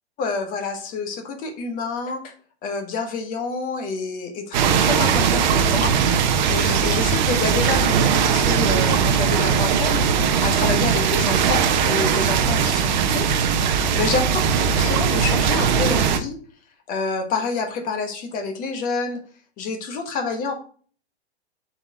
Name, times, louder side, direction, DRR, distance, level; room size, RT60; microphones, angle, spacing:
voice 1, 0.2-2.3 2.6-10.0 10.4-14.2 14.7-16.4 16.9-19.2 19.6-20.5, left 4 dB, 25° left, 6 dB, 1.3 m, -28 dB
sound 1, 4.5-16.2, right 7 dB, 45° right, 0.8 m, -19 dB
6.8 x 4.3 x 4.2 m, 0.44 s
figure-of-eight pair, 110°, 33 cm